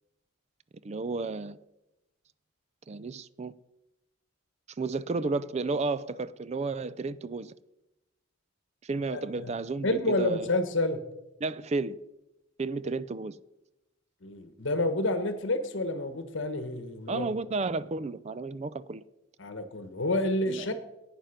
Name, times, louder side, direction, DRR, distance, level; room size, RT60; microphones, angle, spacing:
voice 1, 0.8-1.6 2.9-3.5 4.8-7.5 8.8-10.5 11.4-12.0 12.6-13.4 17.1-19.0 20.5-20.7, right 3 dB, 35° right, 0.4 m, -32 dB
voice 2, 9.1-9.5 9.8-11.0 14.2-17.3 19.4-20.7, left 1 dB, 70° left, 1.1 m, -29 dB
11.5 x 9.0 x 5.8 m
head